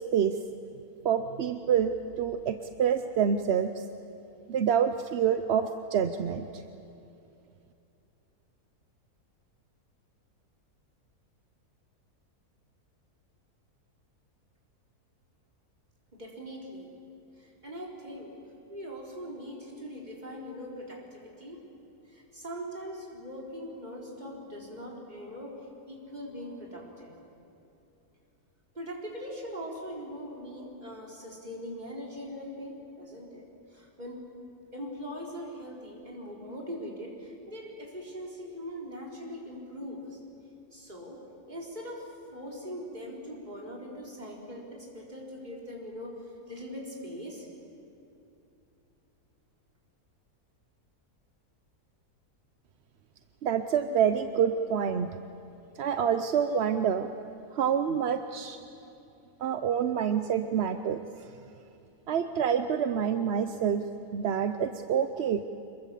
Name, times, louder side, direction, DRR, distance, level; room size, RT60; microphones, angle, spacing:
voice 1, 1.0-3.8 4.5-6.6 53.4-55.2 55.8-57.1 57.5-58.6 59.4-61.1 62.1-63.9 64.1-65.4, right 8 dB, 55° right, 9 dB, 0.8 m, -27 dB
voice 2, 16.1-16.9 17.4-18.4 18.7-21.6 22.1-25.6 25.9-27.1 28.7-34.3 34.7-40.2 40.7-46.2 46.5-47.5, equal, 25° right, -2 dB, 4.2 m, -41 dB
26.0 x 22.0 x 7.5 m, 2.8 s
omnidirectional pair, 1.7 m